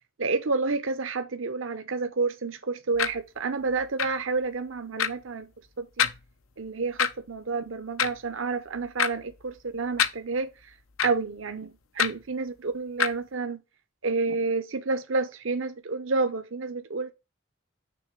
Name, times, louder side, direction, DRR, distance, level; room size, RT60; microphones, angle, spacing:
voice 1, 0.2-5.5 5.8-6.1 6.6-10.5 11.0-11.7 12.0-13.6 14.0-17.1, right 4 dB, 70° right, 0.7 m, -29 dB
sound 1, 3.0-3.1 4.0-4.1 5.0-5.1 6.0-6.2 7.0-7.1 8.0-8.2 9.0-9.1 10.0-10.1 11.0-11.1 12.0-12.1 13.0-13.1, left 8 dB, 85° left, 0.7 m, -24 dB
6.3 x 3.4 x 5.8 m
head